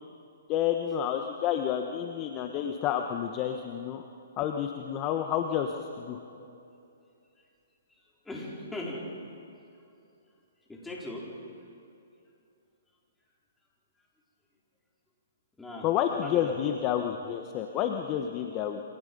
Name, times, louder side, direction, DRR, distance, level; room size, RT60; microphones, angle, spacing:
voice 1, 0.5-4.0 4.4-6.2 15.8-18.8, left 10 dB, 30° left, 4 dB, 1.2 m, -30 dB
voice 2, 8.2-9.0 10.7-11.2 15.6-15.9 16.2-16.6, left 1 dB, 5° left, -4 dB, 4.6 m, -38 dB
28.0 x 25.0 x 5.5 m, 2.6 s
hypercardioid pair, 145°, 0 cm